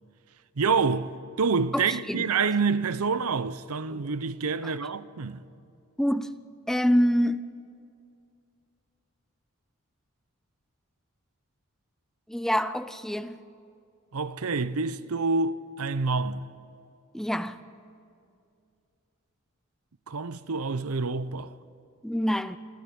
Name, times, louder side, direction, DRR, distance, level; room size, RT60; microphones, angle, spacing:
voice 1, 0.6-1.1 1.4-5.4 14.1-16.5 20.1-21.5, right 4 dB, 85° right, 0.7 m, -27 dB
voice 2, 1.7-2.3 4.6-4.7 6.0-6.3 6.7-7.4 12.3-13.4 17.1-17.6 22.0-22.6, equal, ahead, 0.5 m, -26 dB
25.5 x 13.5 x 8.7 m
head